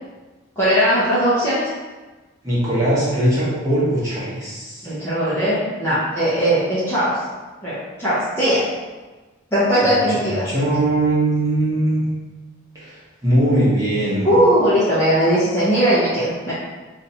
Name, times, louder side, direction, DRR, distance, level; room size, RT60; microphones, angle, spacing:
voice 1, 0.6-1.7 4.8-7.2 7.6-8.6 9.5-10.4 14.2-16.5, equal, 10° left, -13 dB, 0.9 m, -19 dB
voice 2, 2.4-4.9 9.8-12.1 12.7-14.3, right 1 dB, 15° right, -10 dB, 1.3 m, -20 dB
3.1 x 2.7 x 4.2 m, 1.2 s
head